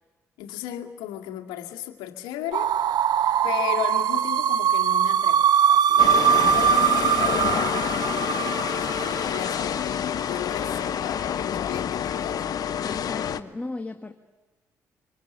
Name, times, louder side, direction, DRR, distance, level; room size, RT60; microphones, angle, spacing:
voice 1, 0.4-2.8 3.4-12.4, left 12 dB, 75° left, 2.1 m, -35 dB
sound 1, 2.5-9.5, right 8 dB, 60° right, 1.0 m, -21 dB
sound 2, 6.0-13.4, left 8 dB, 55° left, 1.1 m, -27 dB
voice 2, 12.8-14.1, left 2 dB, 15° left, 2.0 m, -36 dB
27.0 x 23.5 x 9.3 m
hypercardioid pair, 45°, 8 cm